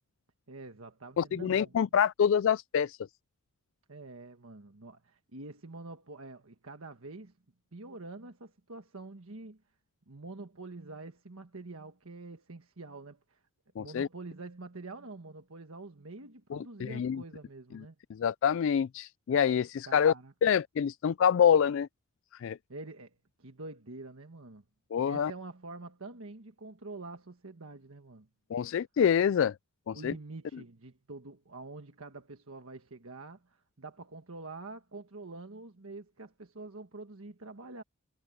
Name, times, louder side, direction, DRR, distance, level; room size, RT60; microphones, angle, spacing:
voice 1, 0.5-1.7 3.9-7.3 7.7-9.6 10.1-13.4 13.8-17.9 19.9-20.3 22.7-24.6 25.0-28.3 29.9-37.8, right 3 dB, 75° right, 1.4 m, -46 dB
voice 2, 1.2-3.0 13.8-14.1 16.5-17.2 18.1-20.1 20.4-21.9 22.3-22.6 24.9-25.3 28.5-29.5 29.9-30.1, left 8 dB, 60° left, 0.3 m, -26 dB
head